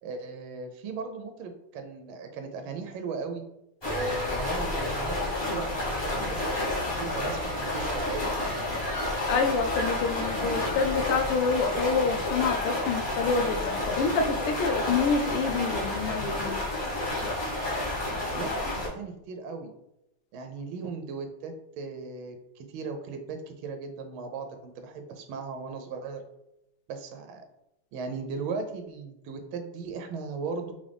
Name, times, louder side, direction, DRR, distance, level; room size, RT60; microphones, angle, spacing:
voice 1, 0.0-3.4 3.9-5.2 5.5-8.3 18.3-19.7 20.3-26.2 26.9-27.4 27.9-30.7, right 4 dB, 75° right, 5 dB, 1.4 m, -37 dB
sound 1, 3.8-18.9, left 1 dB, 30° left, 0.4 m, -30 dB
voice 2, 9.3-16.6 17.6-17.8, left 4 dB, 80° left, 5 dB, 1.4 m, -27 dB
3.8 x 3.5 x 3.4 m, 0.85 s
omnidirectional pair, 2.4 m